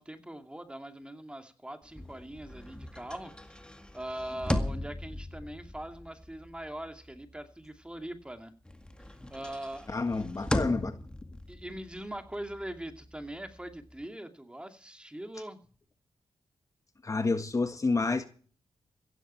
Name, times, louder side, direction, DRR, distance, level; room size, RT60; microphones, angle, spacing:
voice 1, 0.0-3.3 3.6-8.5 9.1-9.9 11.5-15.6, right 1 dB, 10° right, 2.5 m, -42 dB
sound 1, 1.9-8.3 8.7-14.1, left 1 dB, 10° left, 2.0 m, -38 dB
voice 2, 9.9-11.0 17.0-18.3, left 3 dB, 35° left, 1.5 m, -29 dB
16.0 x 15.0 x 4.5 m
cardioid pair, 75°, 10 cm